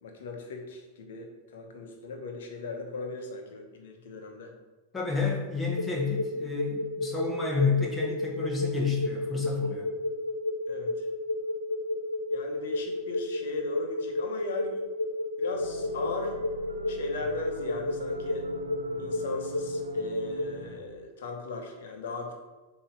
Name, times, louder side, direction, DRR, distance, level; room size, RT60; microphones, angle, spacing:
voice 1, 0.0-4.5 10.7-11.1 12.3-14.8 15.4-16.4 16.9-18.5 19.0-22.3, left 3 dB, 60° left, 3 dB, 1.1 m, -38 dB
voice 2, 4.9-9.9, left 4 dB, 15° left, -2 dB, 1.6 m, -30 dB
sound 1, 5.8-20.5, left 2 dB, 80° left, 0.5 m, -31 dB
sound 2, 15.5-20.8, right 4 dB, 75° right, 1.1 m, -43 dB
7.2 x 3.1 x 5.0 m, 1.2 s
figure-of-eight pair, 90°, 0 cm